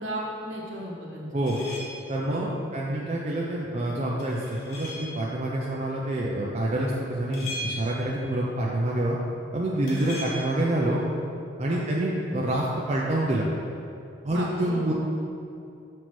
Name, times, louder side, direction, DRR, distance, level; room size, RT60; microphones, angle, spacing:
voice 1, 0.0-1.6 2.3-2.4 10.0-10.1 11.7-11.8 14.3-14.8, right 1 dB, 65° right, -3 dB, 1.0 m, -36 dB
sound 1, 1.4-2.2 4.2-5.3 7.3-8.2 9.9-10.4, left 1 dB, 90° left, 1.1 m, -38 dB
voice 2, 2.1-9.2 9.5-11.0 11.6-13.5 14.2-14.9, right 1 dB, 30° right, -4 dB, 0.4 m, -27 dB
6.0 x 5.3 x 3.1 m, 2.6 s
head